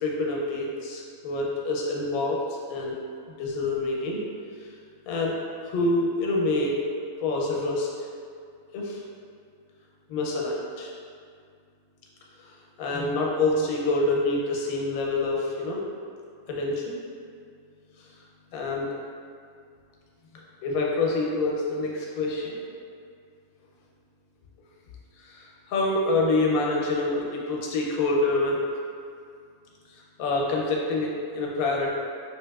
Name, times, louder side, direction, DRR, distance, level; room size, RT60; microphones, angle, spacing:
voice 1, 0.0-3.0 3.3-4.2 5.1-5.4 5.6-6.8 7.2-7.9 8.7-9.0 10.1-10.9 12.8-15.8 16.5-17.0 18.5-18.9 20.3-22.6 25.2-28.6 30.2-31.9, left 2 dB, 85° left, -2 dB, 1.0 m, -26 dB
3.3 x 2.8 x 2.3 m, 2.3 s
omnidirectional pair, 1.5 m